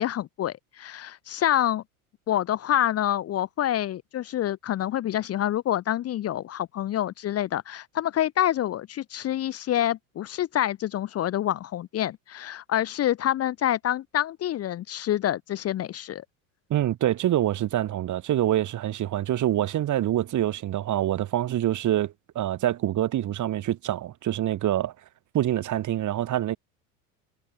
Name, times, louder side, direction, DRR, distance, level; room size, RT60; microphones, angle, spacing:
voice 1, 0.0-1.8 2.3-16.2, left 12 dB, 35° left, 1.0 m, -27 dB
voice 2, 16.7-24.9 25.3-26.6, right 12 dB, 40° right, 3.5 m, -26 dB
hypercardioid pair, 85°, 44 cm